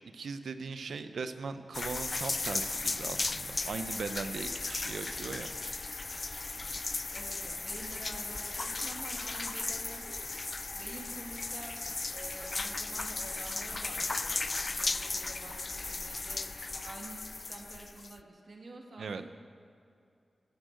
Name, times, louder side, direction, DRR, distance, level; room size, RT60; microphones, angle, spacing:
voice 1, 0.1-5.5 19.0-19.3, right 4 dB, 85° right, 10 dB, 0.6 m, -39 dB
sound 1, 1.7-18.2, left 3 dB, 45° left, 0.3 m, -36 dB
Water tap faucet / Sink (filling or washing), 3.1-8.3, left 1 dB, 30° left, 2.4 m, -64 dB
voice 2, 7.1-10.4 10.7-11.7 12.1-16.4 16.8-19.3, right 2 dB, 65° right, 1 dB, 1.9 m, -48 dB
14.0 x 6.3 x 7.9 m, 2.5 s
cardioid pair, 45°, 0 cm